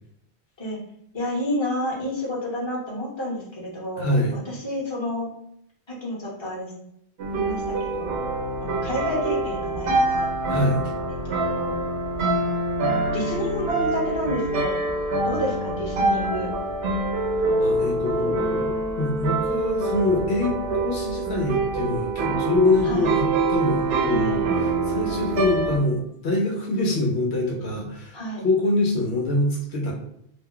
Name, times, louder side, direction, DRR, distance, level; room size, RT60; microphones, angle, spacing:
voice 1, 1.1-5.3 5.9-6.7 7.3-8.1 8.6-10.3 11.2-11.8 13.1-14.9 15.2-16.5 20.7-20.8 22.8-23.2 24.1-24.5 28.1-28.5, left 1 dB, 25° left, -5 dB, 1.0 m, -30 dB
voice 2, 4.0-4.4 10.5-10.8 17.6-20.6 20.8-24.5 24.9-28.2 28.4-29.9, left 2 dB, 75° left, 0 dB, 0.9 m, -24 dB
sound 1, 7.2-25.8, right 2 dB, 70° right, 0.8 m, -25 dB
2.4 x 2.2 x 3.6 m, 0.73 s
omnidirectional pair, 1.1 m